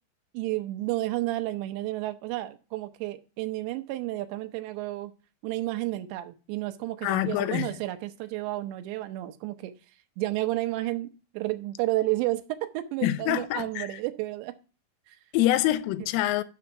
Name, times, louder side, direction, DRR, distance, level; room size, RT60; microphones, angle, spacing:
voice 1, 0.3-5.1 5.4-9.7 10.2-14.6 15.1-15.2, right 17 dB, 80° right, 2.6 m, -31 dB
voice 2, 7.0-7.7 13.0-13.9 15.3-16.4, left 14 dB, 90° left, 3.1 m, -25 dB
7.0 x 6.3 x 5.6 m
omnidirectional pair, 5.7 m